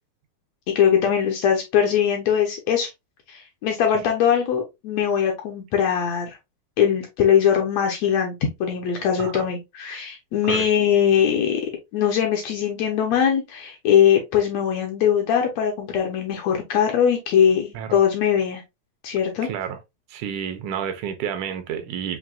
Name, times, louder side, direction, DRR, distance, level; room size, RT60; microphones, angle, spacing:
voice 1, 0.7-2.9 3.3-6.4 6.8-8.3 8.6-11.6 11.9-18.6 19.0-19.5, left 8 dB, 75° left, 1.7 m, -21 dB
voice 2, 19.4-19.8 20.1-22.2, right 8 dB, 80° right, 2.0 m, -30 dB
5.8 x 2.7 x 2.3 m
omnidirectional pair, 3.6 m